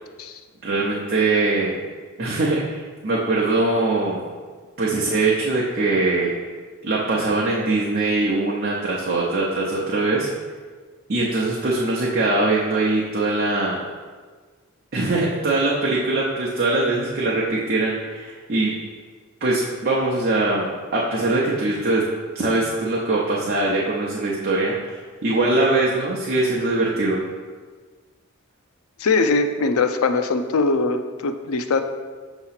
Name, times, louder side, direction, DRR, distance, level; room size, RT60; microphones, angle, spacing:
voice 1, 0.6-1.7 2.2-4.2 4.8-6.3 6.8-10.3 11.1-13.8 14.9-18.8 19.4-27.2, right 2 dB, 45° right, -4 dB, 0.7 m, -22 dB
voice 2, 29.0-31.8, left 3 dB, 85° left, 8 dB, 0.5 m, -21 dB
6.5 x 3.0 x 5.7 m, 1.5 s
head